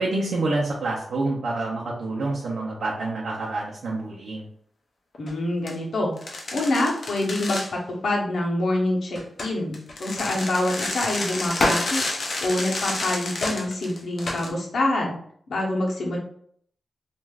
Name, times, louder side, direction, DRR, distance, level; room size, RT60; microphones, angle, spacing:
voice 1, 0.0-4.5, right 2 dB, 90° right, -4 dB, 0.6 m, -27 dB
sound 1, 5.1-5.3 5.7-5.8 6.2-7.7 9.2-14.5, left 2 dB, 55° left, 0.5 m, -29 dB
voice 2, 5.2-6.1 6.5-12.0 12.4-15.1 15.5-16.2, left 1 dB, 70° left, -1 dB, 0.8 m, -26 dB
3.2 x 2.5 x 2.3 m, 0.62 s
wide cardioid pair, 155°, 0 cm